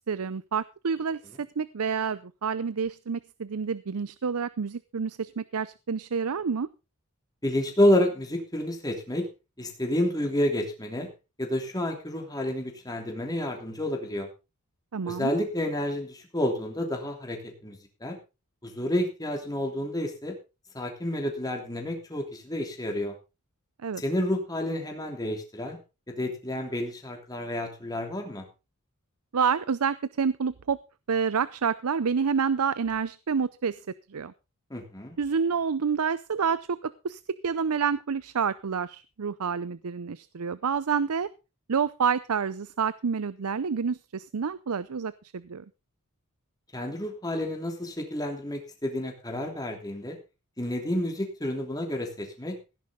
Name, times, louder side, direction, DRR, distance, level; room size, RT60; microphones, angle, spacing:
voice 1, 0.1-6.7 14.9-15.3 23.8-24.0 29.3-30.8 31.1-33.8 34.1-34.3 35.2-41.3 41.7-45.6, right 6 dB, 75° right, 16 dB, 0.6 m, -28 dB
voice 2, 7.4-9.3 9.6-11.1 11.4-14.3 15.0-18.2 18.6-20.3 20.7-23.1 24.0-25.8 26.1-28.5 34.7-35.2 46.7-50.2 50.6-52.6, left 1 dB, 15° left, 2 dB, 3.1 m, -29 dB
16.5 x 10.5 x 3.7 m, 0.29 s
head